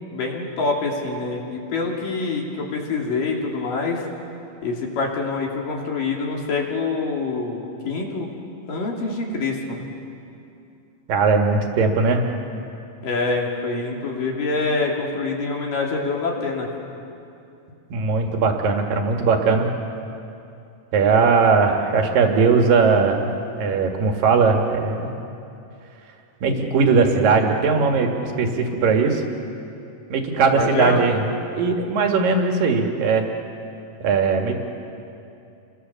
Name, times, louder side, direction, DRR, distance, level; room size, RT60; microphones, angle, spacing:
voice 1, 0.0-4.0 4.6-8.3 8.7-9.9 13.0-16.7 30.5-31.0, left 3 dB, 50° left, -1 dB, 4.1 m, -25 dB
voice 2, 11.1-12.2 17.9-19.7 20.9-23.3 23.6-25.1 26.4-29.2 30.1-31.2 31.5-33.3 34.0-34.6, right 4 dB, 55° right, 3 dB, 3.1 m, -19 dB
30.0 x 23.0 x 7.0 m, 2.7 s
omnidirectional pair, 5.2 m